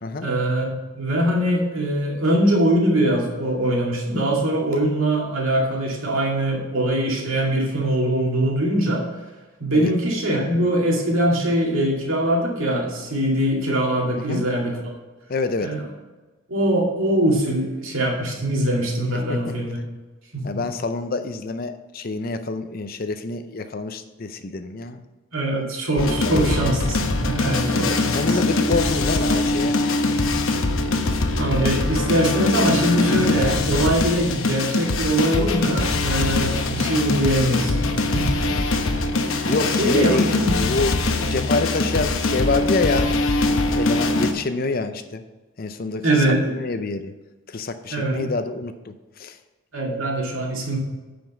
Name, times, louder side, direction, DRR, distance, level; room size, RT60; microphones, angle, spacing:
voice 1, 0.2-9.1 9.6-14.9 15.6-15.8 16.5-19.8 20.3-20.6 25.3-28.5 31.4-38.5 39.4-39.5 39.8-40.5 41.2-41.4 46.0-46.4 47.9-48.3 49.7-50.8, right 1 dB, 70° right, -2 dB, 2.4 m, -22 dB
voice 2, 15.3-15.8 19.3-19.4 20.4-25.0 25.5-25.6 26.2-26.4 27.8-29.8 36.3-36.5 38.5-38.6 39.5-40.3 40.5-41.0 41.3-43.1 43.8-45.2 45.6-47.1 47.5-49.4, left 3 dB, 40° left, 10 dB, 0.5 m, -27 dB
sound 1, 26.0-44.3, left 2 dB, 70° left, 0.9 m, -22 dB
9.3 x 5.2 x 5.9 m, 1.2 s
head